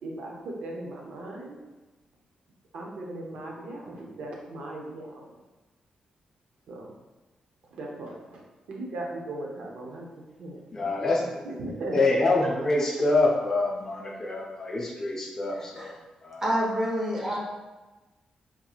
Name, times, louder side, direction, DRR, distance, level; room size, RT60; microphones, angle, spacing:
voice 1, 0.0-1.6 2.7-5.4 6.7-7.0 7.7-8.4 8.7-10.1 10.4-10.6 11.4-12.1 12.4-12.7, right 2 dB, 70° right, -1 dB, 0.7 m, -37 dB
voice 2, 10.7-11.4 11.9-15.9 16.2-16.4 17.2-17.4, left 2 dB, 25° left, -2 dB, 0.5 m, -26 dB
voice 3, 15.5-15.9 16.4-17.4, equal, 20° right, -3 dB, 0.7 m, -28 dB
3.7 x 3.0 x 2.3 m, 1.2 s
wide cardioid pair, 175°, 2 cm